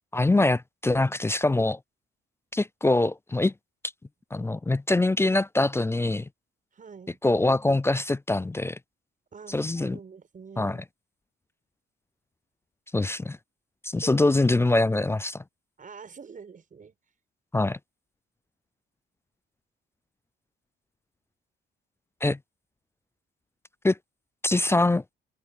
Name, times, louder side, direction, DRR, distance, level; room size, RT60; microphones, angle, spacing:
voice 1, 0.1-1.8 2.5-3.5 4.3-6.3 7.2-8.8 9.5-10.0 10.6-10.8 12.9-13.4 13.8-15.4 17.5-17.8 22.2-22.4 23.8-24.0 24.4-25.0, left 2 dB, 10° left, 0.4 m, -24 dB
voice 2, 6.7-7.2 9.3-10.8 14.0-14.4 15.8-16.9, right 5 dB, 40° right, 7.7 m, -45 dB
cardioid pair, 90°, 20 cm